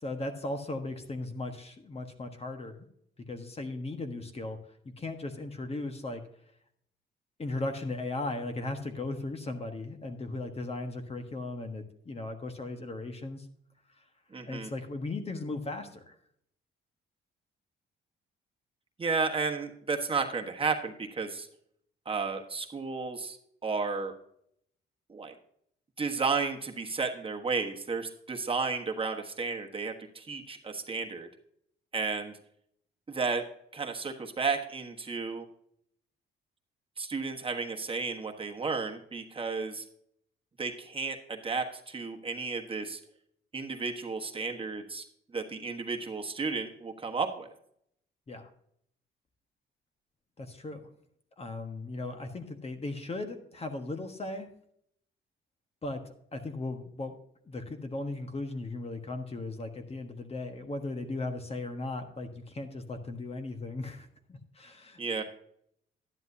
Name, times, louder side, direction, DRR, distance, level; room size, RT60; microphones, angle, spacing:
voice 1, 0.0-2.9 3.3-4.6 4.8-6.2 7.4-13.4 14.5-16.1 48.3-48.5 50.4-50.8 51.4-54.5 55.8-56.0 56.3-57.1 57.5-65.2, left 2 dB, 30° left, 6 dB, 1.3 m, -37 dB
voice 2, 14.3-14.7 19.0-21.5 22.0-23.4 23.6-24.1 25.1-25.3 26.0-31.3 31.9-32.3 33.1-33.4 33.7-35.4 37.0-39.8 40.6-43.0 43.5-45.0 45.3-47.5 65.0-65.2, right 4 dB, 25° right, 2 dB, 1.3 m, -33 dB
11.5 x 10.5 x 2.8 m, 0.70 s
cardioid pair, 90°, 20 cm